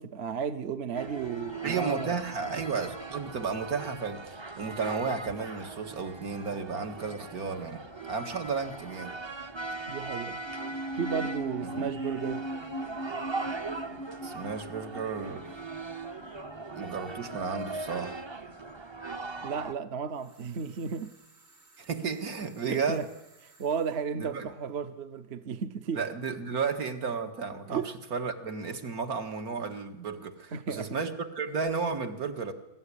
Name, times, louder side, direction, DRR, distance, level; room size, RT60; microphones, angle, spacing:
voice 1, 0.0-2.2 9.9-10.4 11.0-12.5 19.4-21.1 22.7-23.1 23.6-26.0 27.7-27.9 30.5-31.0, right 6 dB, 50° right, 1.0 m, -34 dB
sound 1, 0.9-19.7, right 3 dB, 25° right, 0.7 m, -40 dB
voice 2, 1.6-7.8 8.1-9.2 11.6-11.9 14.2-15.4 16.7-18.2 21.8-23.0 24.1-24.5 25.9-32.5, right 5 dB, 70° right, 2.3 m, -33 dB
sound 2, 10.4-17.0 17.3-17.4, right 1 dB, 25° left, 0.5 m, -39 dB
sound 3, 20.1-24.1, right 2 dB, 90° right, 4.1 m, -60 dB
24.0 x 13.5 x 9.9 m
omnidirectional pair, 1.6 m